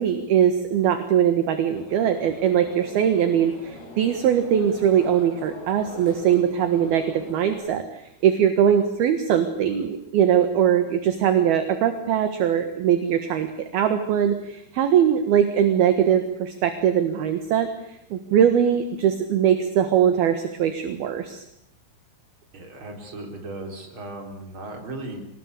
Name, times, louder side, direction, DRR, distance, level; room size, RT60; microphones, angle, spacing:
voice 1, 0.0-13.5 13.7-17.7 18.1-21.4, right 9 dB, 65° right, 8 dB, 2.8 m, -21 dB
sound 1, 1.8-7.6, left 1 dB, 50° left, 7.0 m, -42 dB
voice 2, 22.5-25.2, right 2 dB, 25° right, 3 dB, 4.4 m, -36 dB
26.5 x 19.0 x 8.4 m, 0.75 s
omnidirectional pair, 6.0 m